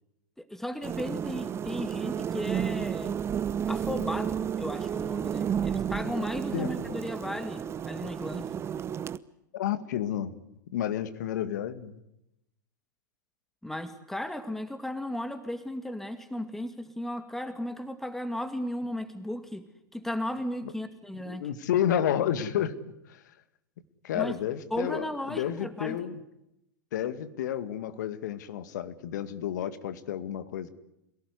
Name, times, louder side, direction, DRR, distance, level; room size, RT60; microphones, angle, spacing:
voice 1, 0.4-3.2 3.7-8.5 13.6-19.7 19.9-21.4 24.1-24.4 24.7-26.0, left 1 dB, 5° left, 9 dB, 2.4 m, -35 dB
sound 1, 0.8-9.2, right 8 dB, 25° right, 0.9 m, -32 dB
voice 2, 9.5-10.3 10.7-12.0 20.6-20.7 21.3-22.8 23.1-23.2 24.0-26.2 26.9-30.7, left 10 dB, 65° left, 12 dB, 2.1 m, -31 dB
27.5 x 18.0 x 9.8 m, 0.85 s
figure-of-eight pair, 95°, 10 cm